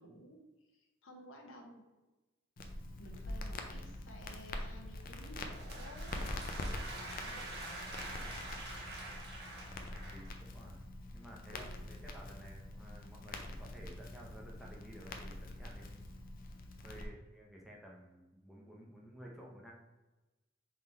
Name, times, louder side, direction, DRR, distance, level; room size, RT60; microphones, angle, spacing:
voice 1, 0.0-1.8 3.0-6.2 6.9-8.0 11.5-11.9, equal, 70° left, 1 dB, 0.9 m, -54 dB
Crackle, 2.6-17.0, left 1 dB, 45° left, 0.5 m, -45 dB
sound 1, 5.2-10.3, right 2 dB, 55° right, 1.2 m, -46 dB
voice 2, 9.6-10.8 11.1-16.1 16.8-19.7, equal, ahead, -3 dB, 0.7 m, -54 dB
3.8 x 3.1 x 4.3 m, 1.1 s
head